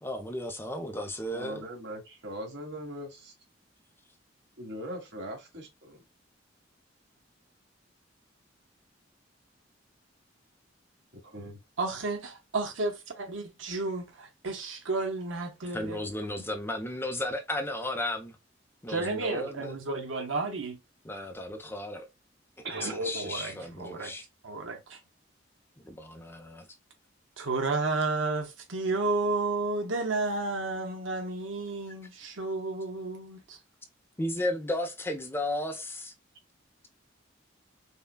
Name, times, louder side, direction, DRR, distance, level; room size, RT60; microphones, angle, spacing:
voice 1, 0.0-1.6 15.7-18.3 18.8-19.8 21.0-22.1 22.6-24.2 25.8-26.7 34.2-36.1, left 1 dB, 10° left, 0.6 m, -34 dB
voice 2, 1.3-3.3 4.6-6.0 11.3-11.6 22.6-23.1 23.5-23.6, right 1 dB, 65° right, 1.7 m, -40 dB
voice 3, 11.8-16.0 18.9-20.8 22.7-24.1 24.4-25.0 27.4-33.6, right 3 dB, 85° right, 0.9 m, -32 dB
5.4 x 2.2 x 2.3 m
head